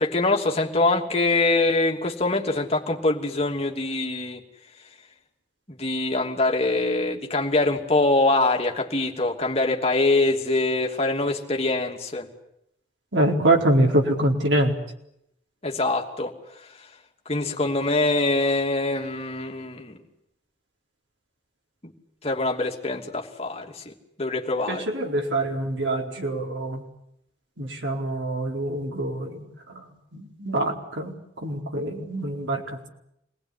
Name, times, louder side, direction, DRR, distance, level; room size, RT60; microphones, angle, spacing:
voice 1, 0.0-4.4 5.7-12.3 15.6-16.3 17.3-20.0 21.8-21.9 22.2-23.9 24.2-24.8, left 2 dB, 35° left, 2 dB, 2.9 m, -24 dB
voice 2, 13.1-14.7 24.7-26.8 27.6-29.4 29.7-29.8 30.1-31.1 31.4-32.6, right 1 dB, 80° right, 1 dB, 4.4 m, -24 dB
27.0 x 20.5 x 9.9 m, 0.78 s
head